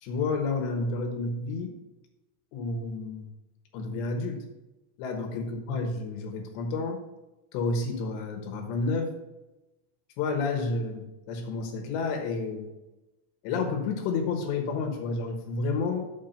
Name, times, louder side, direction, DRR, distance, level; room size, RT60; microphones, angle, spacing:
voice 1, 0.0-1.7 2.5-3.3 3.7-4.4 5.0-7.0 7.5-9.1 10.2-12.7 13.4-16.1, left 3 dB, 75° left, 4 dB, 3.2 m, -30 dB
9.2 x 4.8 x 5.6 m, 1.0 s
omnidirectional pair, 5.2 m